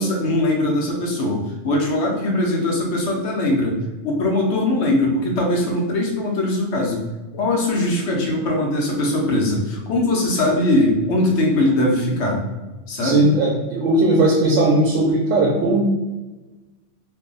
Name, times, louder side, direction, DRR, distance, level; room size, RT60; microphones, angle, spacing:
voice 1, 0.0-3.8 4.0-7.0 7.3-12.4 12.9-13.3, left 1 dB, 70° left, -1 dB, 1.0 m, -21 dB
voice 2, 13.0-15.8, right 2 dB, 80° right, -2 dB, 0.9 m, -17 dB
2.7 x 2.1 x 3.7 m, 1.1 s
omnidirectional pair, 1.3 m